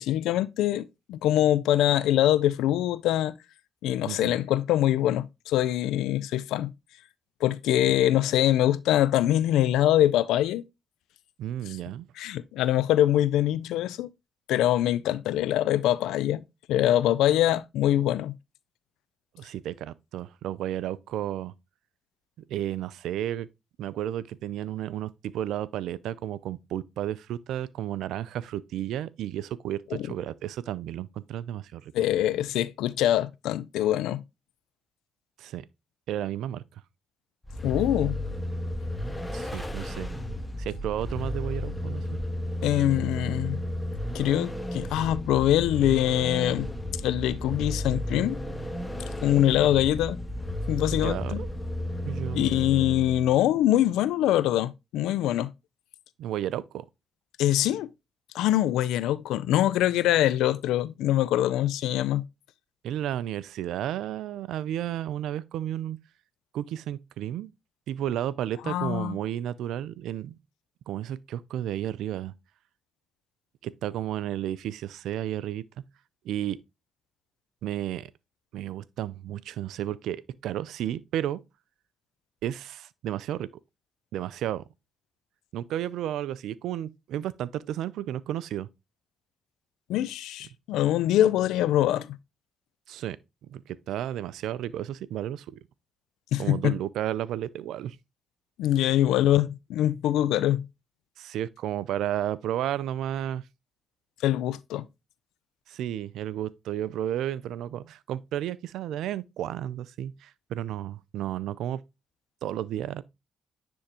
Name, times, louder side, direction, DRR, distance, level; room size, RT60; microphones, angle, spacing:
voice 1, 0.0-3.4 3.8-6.7 7.4-10.6 11.7-11.8 12.2-14.1 14.5-18.3 29.9-30.1 31.9-34.2 37.6-38.2 42.6-43.6 44.1-46.7 47.0-48.4 49.2-50.2 50.7-51.4 52.3-55.5 57.4-57.9 58.3-62.2 68.6-69.2 89.9-92.2 96.3-96.7 98.6-100.7 104.2-104.9, left 13 dB, 80° left, 0.4 m, -24 dB
voice 2, 4.0-4.3 11.4-12.1 19.3-21.5 22.5-23.5 23.8-31.9 35.4-35.7 36.1-36.6 39.3-40.1 40.6-42.0 49.6-49.7 50.9-51.5 52.0-52.5 56.2-56.8 62.8-66.0 66.5-67.5 67.9-70.4 70.9-72.3 73.6-75.6 76.2-76.6 77.6-78.1 78.5-81.4 82.4-83.5 84.1-84.6 85.5-88.7 92.9-93.2 93.5-95.6 96.4-98.0 101.2-103.4 105.7-111.8 112.4-113.0, right 11 dB, 80° right, 0.4 m, -32 dB
Vehicle, 37.4-53.4, left 1 dB, 15° left, 1.0 m, -33 dB
9.9 x 3.5 x 2.9 m
supercardioid pair, 50°, 0 cm